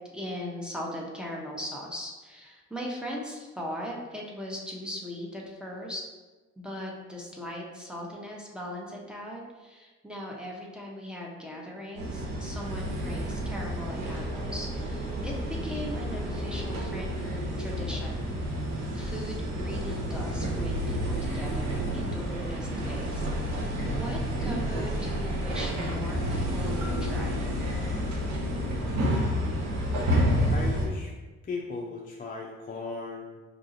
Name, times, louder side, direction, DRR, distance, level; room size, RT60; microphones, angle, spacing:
voice 1, 0.1-6.0 6.6-18.3 18.9-27.5, equal, 5° right, -2 dB, 0.7 m, -39 dB
sound 1, 12.0-30.9, equal, 70° right, 1.0 m, -30 dB
voice 2, 30.4-31.1 31.4-33.4, left 3 dB, 30° left, -1 dB, 0.4 m, -37 dB
4.9 x 2.6 x 2.5 m, 1.2 s
cardioid pair, 90°, 30 cm